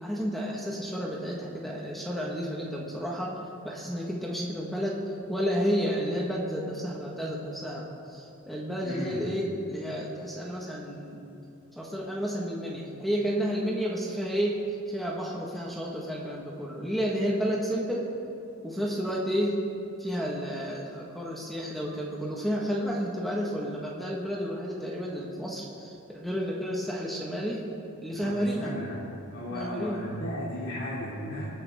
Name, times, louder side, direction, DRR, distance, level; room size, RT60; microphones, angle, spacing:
voice 1, 0.0-3.3 3.6-5.0 5.3-11.2 11.8-14.6 14.9-18.1 18.6-19.6 20.0-27.7 28.0-28.7 29.5-30.0, equal, ahead, -3 dB, 1.4 m, -31 dB
voice 2, 8.8-9.3 28.2-29.0 29.3-31.5, equal, 70° left, -7 dB, 2.6 m, -35 dB
25.5 x 9.5 x 3.6 m, 2.8 s
head